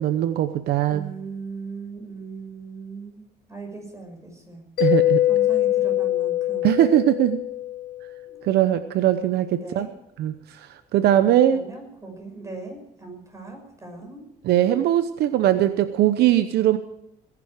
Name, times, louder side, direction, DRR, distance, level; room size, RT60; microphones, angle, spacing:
voice 1, 0.0-1.1 4.8-5.2 6.6-7.4 8.4-9.9 10.2-10.7 10.9-11.6 14.4-16.8, right 12 dB, 75° right, 11 dB, 0.8 m, -20 dB
voice 2, 0.9-3.2 3.5-4.6 5.3-6.7 8.2-8.4 9.6-9.9 11.5-14.2, right 4 dB, 20° right, 3 dB, 6.1 m, -39 dB
Mallet percussion, 4.8-8.2, left 13 dB, 65° left, 1.3 m, -23 dB
19.5 x 11.0 x 5.0 m, 0.83 s
cardioid pair, 110°, 17 cm